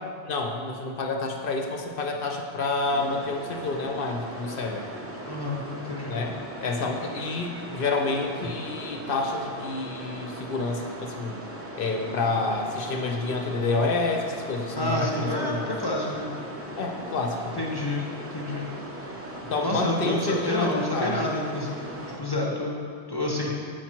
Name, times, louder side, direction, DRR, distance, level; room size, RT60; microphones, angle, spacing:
voice 1, 0.2-4.9 6.1-11.4 11.8-15.7 16.8-17.5 19.5-21.2, left 3 dB, 55° left, 2 dB, 0.8 m, -29 dB
sound 1, 2.8-22.2, right 1 dB, 20° right, 0.5 m, -39 dB
voice 2, 5.3-6.1 8.4-8.5 14.8-16.3 17.5-18.7 19.6-23.6, left 1 dB, 25° left, -3 dB, 0.7 m, -29 dB
7.3 x 5.0 x 4.4 m, 2.1 s
omnidirectional pair, 1.2 m